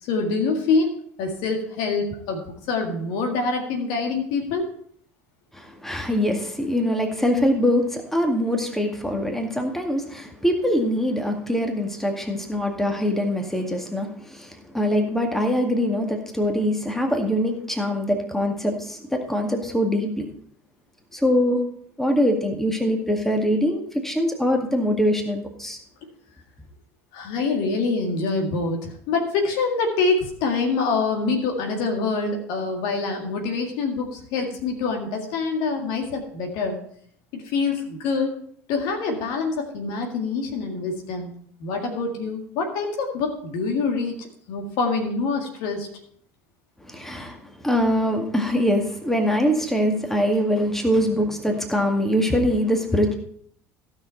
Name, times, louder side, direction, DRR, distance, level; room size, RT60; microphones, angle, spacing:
voice 1, 0.0-4.6 27.1-36.8 37.3-38.3 38.7-45.9, left 4 dB, 55° left, 3 dB, 1.9 m, -25 dB
voice 2, 5.5-20.3 21.1-21.6 22.0-25.8 46.9-53.1, equal, 5° left, 3 dB, 2.0 m, -23 dB
15.5 x 6.3 x 4.4 m, 0.63 s
figure-of-eight pair, 65°, 8 cm